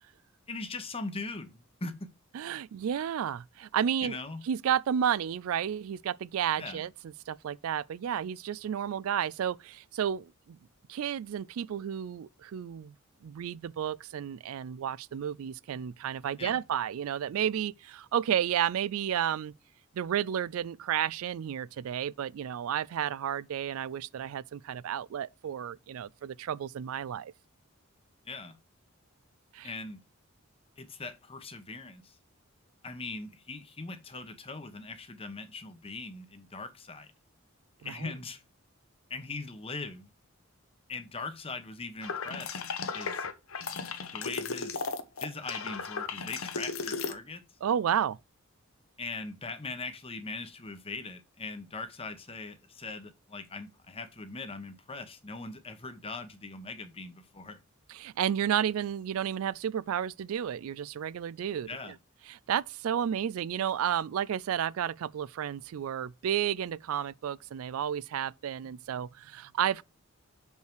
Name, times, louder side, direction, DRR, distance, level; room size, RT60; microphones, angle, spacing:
voice 1, 0.5-1.9 4.0-4.4 6.6-6.8 16.4-16.6 28.2-28.6 29.6-30.0 30.8-32.2 32.8-37.1 37.8-38.4 39.1-40.1 40.9-42.6 42.9-43.3 44.1-44.8 45.2-47.4 49.0-57.6 61.7-62.0, left 3 dB, 25° left, 1.0 m, -40 dB
voice 2, 2.3-4.2 4.5-6.9 7.3-10.3 10.9-12.9 13.2-19.5 19.9-27.3 29.5-29.7 37.8-38.1 47.6-48.2 57.9-61.7 62.3-69.8, right 9 dB, 75° right, 0.3 m, -32 dB
sound 1, 42.0-47.1, left 5 dB, 75° left, 1.0 m, -35 dB
6.6 x 5.5 x 4.5 m
head